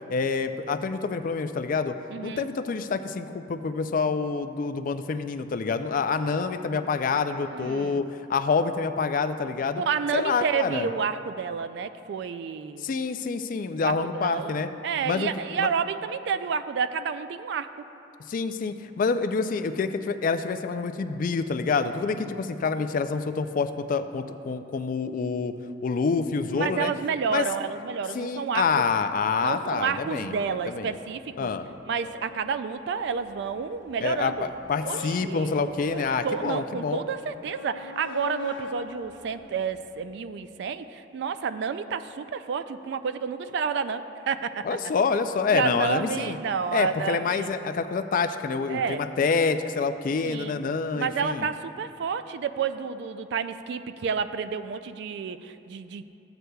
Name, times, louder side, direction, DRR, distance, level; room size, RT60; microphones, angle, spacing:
voice 1, 0.1-1.9 2.2-9.8 10.1-10.9 12.8-14.7 15.0-15.3 15.6-15.7 18.3-25.5 25.8-26.9 27.3-27.5 28.1-30.3 30.7-31.0 31.4-31.7 34.0-37.0 44.6-46.4 46.7-51.5, left 5 dB, 45° left, 9 dB, 0.3 m, -27 dB
voice 2, 2.1-2.5 7.5-8.0 9.8-12.9 13.8-14.6 14.8-17.9 26.5-28.8 29.4-31.5 31.9-34.5 34.8-44.6 45.5-47.6 48.7-49.0 50.2-50.6 50.9-56.0, right 6 dB, 65° right, 12 dB, 0.3 m, -30 dB
sound 1, 30.3-40.2, left 4 dB, 80° left, 1.0 m, -43 dB
13.5 x 7.9 x 2.3 m, 2.8 s
head